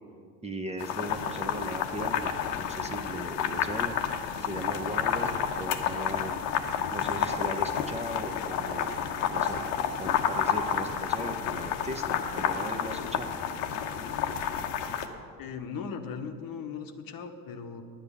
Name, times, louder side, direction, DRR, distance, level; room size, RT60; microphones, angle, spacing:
voice 1, 0.4-4.0 4.4-6.4 6.9-8.9 9.3-9.6 10.0-13.3, right 1 dB, 15° right, 6 dB, 0.9 m, -38 dB
sound 1, 0.8-15.1, left 8 dB, 80° left, 1.0 m, -30 dB
voice 2, 15.4-17.8, left 6 dB, 50° left, 6 dB, 1.1 m, -38 dB
10.5 x 8.1 x 7.0 m, 2.3 s
hypercardioid pair, 75°, 46 cm